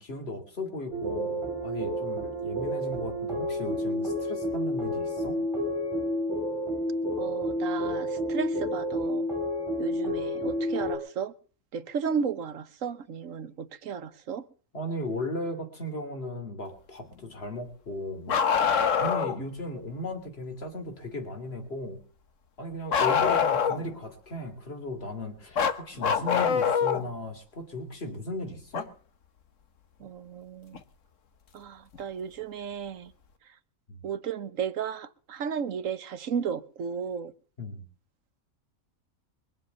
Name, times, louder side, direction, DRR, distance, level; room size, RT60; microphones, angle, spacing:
voice 1, 0.0-5.4 14.7-18.4 19.0-22.0 22.6-28.9 33.9-34.0 37.6-37.8, left 1 dB, 45° left, 3.1 m, -36 dB
sound 1, 0.9-11.0, equal, 10° left, 5.0 m, -30 dB
voice 2, 7.2-9.3 9.8-11.3 11.7-14.4 30.0-30.8 31.5-33.1 34.0-37.3, right 7 dB, 65° right, 1.4 m, -34 dB
Bark, 18.3-19.4 22.9-24.0 25.6-27.1 28.7-28.8 30.8-30.9 32.0-32.1, left 6 dB, 60° left, 1.5 m, -24 dB
23.0 x 7.6 x 6.9 m
omnidirectional pair, 1.5 m